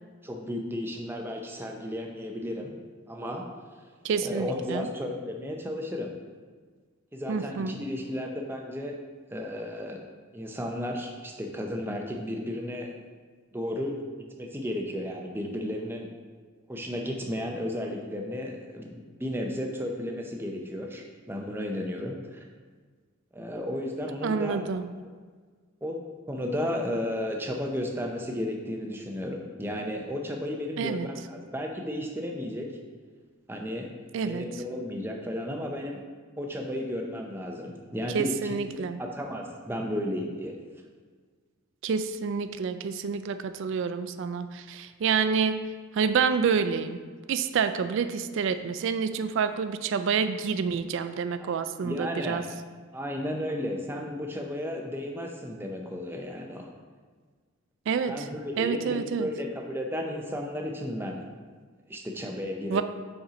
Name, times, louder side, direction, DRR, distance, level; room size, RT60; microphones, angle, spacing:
voice 1, 0.2-2.7 3.1-3.5 4.2-6.1 7.1-9.0 9.3-10.0 10.3-12.9 13.5-14.0 14.4-16.1 16.7-22.4 23.3-24.6 25.8-26.0 26.3-32.7 33.5-33.9 34.2-36.0 36.4-40.6 51.4-51.5 51.8-52.4 52.9-56.7 58.1-61.2 61.9-62.8, left 1 dB, 10° right, 1 dB, 0.6 m, -33 dB
voice 2, 4.0-4.9 7.3-7.8 24.2-24.9 30.8-31.1 34.1-34.4 38.1-39.0 41.8-47.0 47.3-52.4 57.9-58.3 58.6-59.3 62.7-62.8, right 6 dB, 55° right, 10 dB, 0.3 m, -28 dB
5.5 x 4.3 x 5.0 m, 1.5 s
head